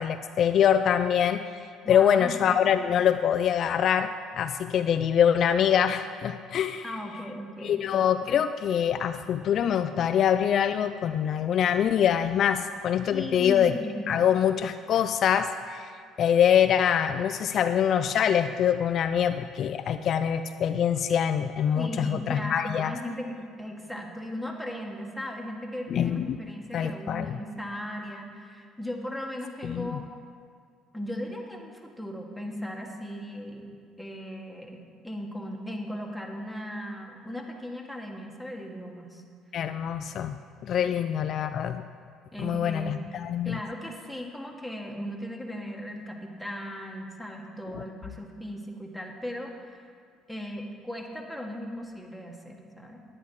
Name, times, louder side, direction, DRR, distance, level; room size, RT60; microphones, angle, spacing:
voice 1, 0.0-1.4 1.9-6.8 7.6-13.7 14.1-15.9 16.2-22.9 25.9-26.4 26.7-27.4 29.6-30.0 39.5-40.4 40.6-41.8 42.4-43.6, left 9 dB, 55° left, 9 dB, 0.4 m, -24 dB
voice 2, 1.8-2.5 6.8-7.8 13.1-14.1 21.7-30.1 30.9-33.7 34.0-39.2 40.8-41.0 42.3-42.8 43.4-49.9 50.3-53.0, left 1 dB, ahead, 1 dB, 1.6 m, -37 dB
10.0 x 9.9 x 4.8 m, 2.1 s
cardioid pair, 100°, 0 cm